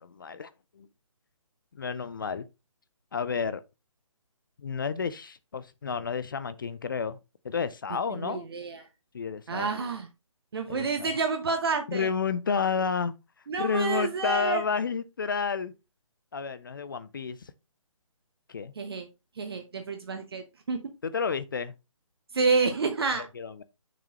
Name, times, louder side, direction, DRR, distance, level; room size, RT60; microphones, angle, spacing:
voice 1, 0.0-0.5 0.8-0.9 1.8-2.5 3.1-3.6 4.6-7.2 7.4-8.5 9.1-9.7 10.7-11.1 11.9-13.1 13.6-15.7 16.3-17.5 18.5-18.7 21.0-21.7 23.1-23.6, left 5 dB, 40° left, 0.4 m, -31 dB
voice 2, 8.1-8.8 9.5-10.1 10.5-12.1 13.5-14.6 18.8-19.1 19.4-20.8 22.3-23.3, right 4 dB, 45° right, 1.0 m, -29 dB
6.5 x 6.1 x 2.9 m
figure-of-eight pair, 145°, 17 cm